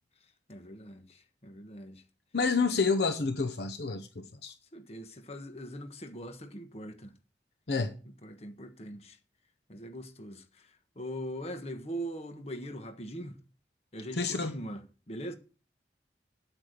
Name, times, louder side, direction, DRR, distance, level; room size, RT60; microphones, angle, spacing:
voice 1, 0.5-2.0 4.7-7.1 7.8-7.9 8.2-9.2 9.7-10.4 11.0-13.4 13.9-15.4, equal, 35° left, 1.4 m, -41 dB
voice 2, 2.3-4.5 7.7-8.0 14.1-14.6, left 4 dB, 70° left, 0.8 m, -29 dB
8.6 x 8.2 x 6.7 m
head